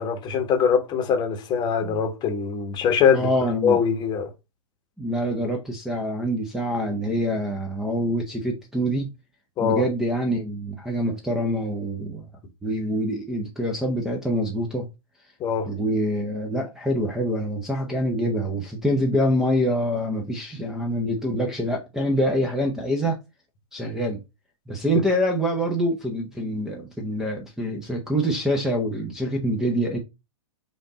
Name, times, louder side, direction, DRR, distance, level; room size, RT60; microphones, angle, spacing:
voice 1, 0.0-3.3 3.6-4.3 9.6-9.8 15.4-15.7, left 7 dB, 25° left, 1.0 m, -22 dB
voice 2, 3.1-3.8 5.0-9.1 9.6-12.2 12.6-14.9 15.7-23.2 23.7-24.2 24.7-30.0, equal, 5° right, 0.7 m, -25 dB
5.2 x 2.5 x 3.9 m
hypercardioid pair, 115°, 17 cm